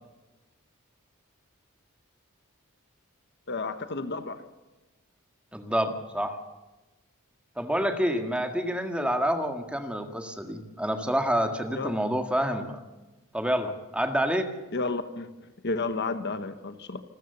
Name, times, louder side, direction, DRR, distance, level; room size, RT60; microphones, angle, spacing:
voice 1, 3.5-4.4 11.7-12.0 14.7-15.3 15.6-17.0, left 3 dB, 50° left, 10 dB, 1.2 m, -31 dB
voice 2, 5.5-6.4 7.6-12.8 13.3-14.5, equal, 5° right, 6 dB, 1.8 m, -28 dB
27.5 x 14.0 x 6.8 m, 1.1 s
head